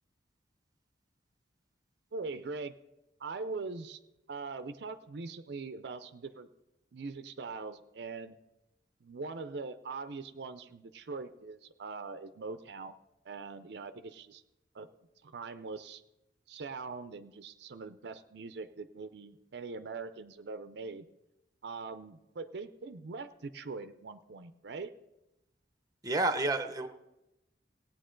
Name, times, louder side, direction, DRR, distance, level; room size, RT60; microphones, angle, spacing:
voice 1, 2.1-2.7 3.2-4.0 4.3-6.5 6.9-8.4 9.0-12.9 13.2-14.4 14.7-14.9 15.2-16.0 16.5-21.1 21.6-24.9, right 4 dB, 65° right, 10 dB, 0.5 m, -42 dB
voice 2, 26.0-26.9, right 2 dB, 20° right, 9 dB, 0.7 m, -29 dB
17.5 x 8.9 x 3.8 m, 0.93 s
head